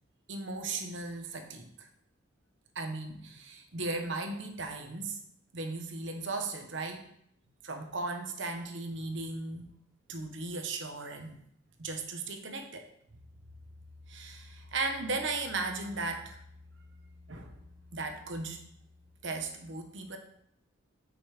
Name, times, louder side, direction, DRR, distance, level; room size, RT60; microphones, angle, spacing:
voice 1, 0.3-1.9 2.7-5.2 5.5-7.0 7.6-9.7 10.1-11.4 11.8-12.9 14.1-16.4 17.3-17.5 17.9-18.6 19.2-20.2, right 3 dB, 70° right, 5 dB, 1.1 m, -36 dB
6.0 x 5.4 x 5.0 m, 0.70 s
head